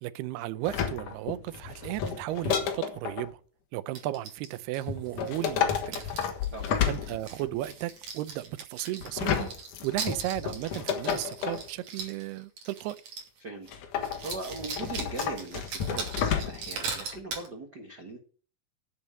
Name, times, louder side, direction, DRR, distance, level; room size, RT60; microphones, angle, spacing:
voice 1, 0.0-3.4 3.7-6.1 6.9-9.5 9.8-13.0, right 15 dB, 90° right, 2.7 m, -34 dB
sound 1, 0.6-3.3 4.9-7.6 9.0-11.7 13.7-16.8 17.1-17.2, left 8 dB, 60° left, 2.8 m, -31 dB
sound 2, 3.9-5.6 5.9-13.4 13.7-13.8 14.0-17.5, right 5 dB, 55° right, 3.9 m, -40 dB
voice 2, 13.4-18.2, right 3 dB, 70° right, 0.9 m, -40 dB
8.6 x 7.9 x 8.3 m
omnidirectional pair, 4.5 m